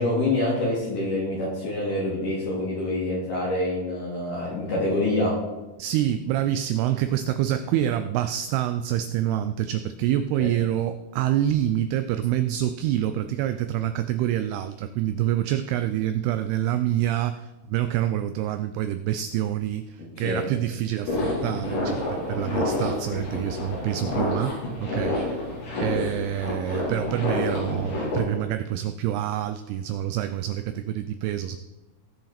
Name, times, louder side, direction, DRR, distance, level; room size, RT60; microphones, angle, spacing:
voice 1, 0.0-5.3 10.4-10.5 20.2-20.5, left 1 dB, 55° left, -6 dB, 3.4 m, -26 dB
voice 2, 5.8-25.2 25.8-31.6, right 12 dB, 85° right, 10 dB, 2.3 m, -26 dB
sound 1, 21.0-28.2, left 2 dB, 75° left, 6.2 m, -28 dB
18.5 x 6.4 x 4.3 m, 1.1 s
omnidirectional pair, 5.1 m